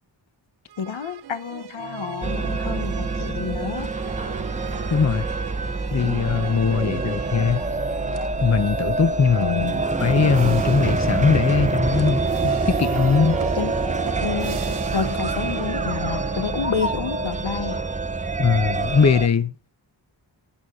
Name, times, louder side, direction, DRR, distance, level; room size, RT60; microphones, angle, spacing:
sound 1, 0.7-8.6 9.1-17.1, right 8 dB, 60° right, 0.6 m, -36 dB
voice 1, 0.8-3.9 9.4-9.9 13.6-13.7 14.2-17.8, left 7 dB, 80° left, 1.0 m, -29 dB
sound 2, 2.2-19.3, right 3 dB, 15° right, 0.7 m, -26 dB
voice 2, 4.9-5.3 5.9-7.6 8.4-9.6 10.0-13.4 18.4-19.5, left 5 dB, 35° left, 0.7 m, -20 dB
sound 3, 6.1-6.2 6.7-15.3, right 5 dB, 40° right, 1.1 m, -42 dB
11.5 x 7.9 x 3.7 m
wide cardioid pair, 75°, 45 cm